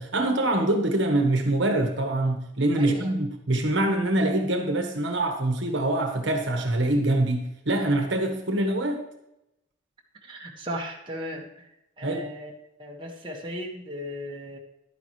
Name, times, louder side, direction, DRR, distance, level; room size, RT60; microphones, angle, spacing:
voice 1, 0.0-9.0 12.0-12.2, right 1 dB, 60° right, 4 dB, 1.4 m, -24 dB
voice 2, 2.8-3.1 6.9-7.2 10.2-11.7 12.0-12.5 12.8-14.6, equal, 25° right, -2 dB, 1.6 m, -36 dB
11.5 x 10.0 x 3.2 m, 0.86 s
head